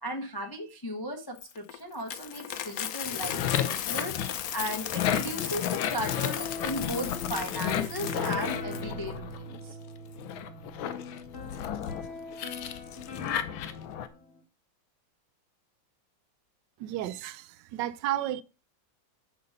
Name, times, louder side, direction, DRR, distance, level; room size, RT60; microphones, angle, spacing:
voice 1, 0.0-4.2 4.5-9.8, equal, 20° left, 0.6 m, -36 dB
Coin (dropping), 1.4-8.8, left 10 dB, 65° left, 0.9 m, -36 dB
sound 1, 3.0-9.7 10.2-14.1, left 10 dB, 85° left, 1.5 m, -33 dB
sound 2, 5.6-14.4, left 2 dB, 40° left, 1.2 m, -41 dB
voice 2, 16.8-18.4, right 13 dB, 75° right, 1.1 m, -32 dB
6.9 x 5.5 x 6.4 m
omnidirectional pair, 2.1 m